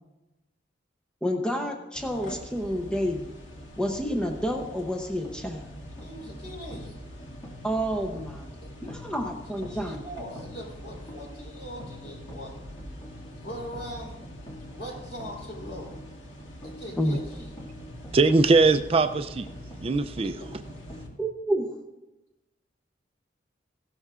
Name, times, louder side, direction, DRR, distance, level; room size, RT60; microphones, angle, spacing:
voice 1, 1.2-3.3 3.8-5.6 7.6-8.5 8.8-10.0 17.0-17.2 21.2-21.7, equal, 5° left, 2 dB, 0.7 m, -29 dB
sound 1, 1.9-21.1, equal, 90° left, 1.6 m, -44 dB
sound 2, 3.5-21.1, left 1 dB, 20° left, 2.0 m, -47 dB
voice 2, 6.0-7.0 8.6-8.7 9.6-12.5 13.3-14.2 14.7-16.0 16.6-17.6 20.2-20.3, equal, 70° left, -2 dB, 4.0 m, -41 dB
voice 3, 18.1-19.5 19.8-20.3, right 3 dB, 30° right, 10 dB, 0.4 m, -21 dB
16.5 x 12.0 x 2.4 m, 1.0 s
head